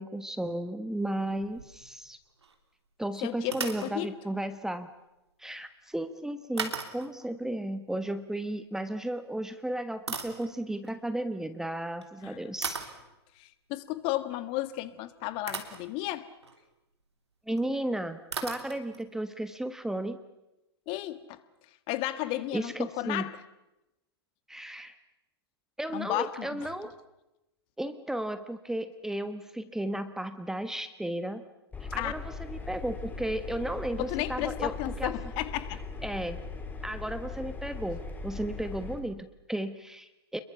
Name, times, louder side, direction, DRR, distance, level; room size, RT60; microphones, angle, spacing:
voice 1, 0.0-2.2 3.0-4.9 5.4-12.8 17.5-20.2 22.5-23.3 24.5-24.9 25.8-26.9 27.8-31.4 31.8-35.1 36.0-36.4 36.8-40.4, right 1 dB, 5° right, 11 dB, 1.2 m, -34 dB
sound 1, 1.0-2.1 2.4-2.6 3.4-3.9 6.6-7.3 8.9-9.1 9.7-10.9 11.9-12.1 12.6-13.0 14.9-15.0 15.5-15.9 16.3-16.6 17.6-17.7 17.9-18.0 18.3-19.1, right 5 dB, 80° right, 3.3 m, -37 dB
voice 2, 3.2-4.1 12.2-12.4 13.4-16.3 20.9-21.4 21.9-23.3 25.9-26.7 32.0-32.1 34.0-35.8, left 16 dB, 40° left, 13 dB, 1.7 m, -33 dB
Engine, 31.7-39.0, left 4 dB, 10° left, 3.2 m, -39 dB
28.0 x 22.5 x 7.1 m, 0.96 s
figure-of-eight pair, 105°, 14 cm